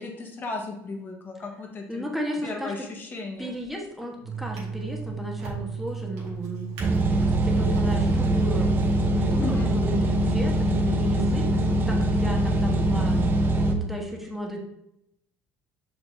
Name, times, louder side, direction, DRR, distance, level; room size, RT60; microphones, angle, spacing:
voice 1, 0.0-2.1 2.4-3.5 9.4-9.7, left 3 dB, 35° left, 2 dB, 1.4 m, -35 dB
voice 2, 1.9-2.7 3.4-6.7 7.2-8.7 9.1-13.2 13.7-14.6, equal, 5° right, -1 dB, 1.4 m, -34 dB
Drawer open or close, 3.4-3.8 4.4-9.5 10.2-10.4, right 1 dB, 80° right, 1.9 m, -41 dB
sound 1, 4.2-13.6, right 5 dB, 85° left, 1.6 m, -37 dB
sound 2, 6.8-13.7, right 1 dB, 35° right, 0.9 m, -23 dB
6.3 x 5.4 x 2.8 m, 0.81 s
supercardioid pair, 105°, 6 cm